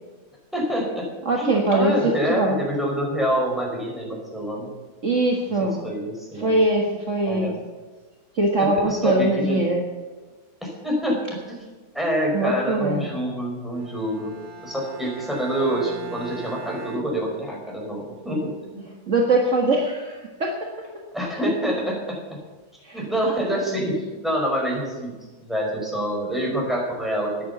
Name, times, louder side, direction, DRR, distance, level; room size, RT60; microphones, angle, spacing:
voice 1, 0.5-1.1 1.4-4.7 5.6-6.6 7.2-7.6 8.5-9.6 10.6-11.2 11.5-11.6 11.9-14.3 14.6-18.8 21.1-22.4 22.9-25.1 25.4-27.3, equal, ahead, -2 dB, 4.8 m, -26 dB
voice 2, 1.3-2.6 5.0-5.8 6.4-7.5 8.4-9.8 12.3-13.0 19.1-20.6 22.8-23.0, right 2 dB, 50° right, 1 dB, 1.9 m, -22 dB
Bowed string instrument, 13.8-17.9, right 5 dB, 90° right, 2.0 m, -41 dB
13.0 x 10.5 x 6.9 m, 1.3 s
omnidirectional pair, 1.7 m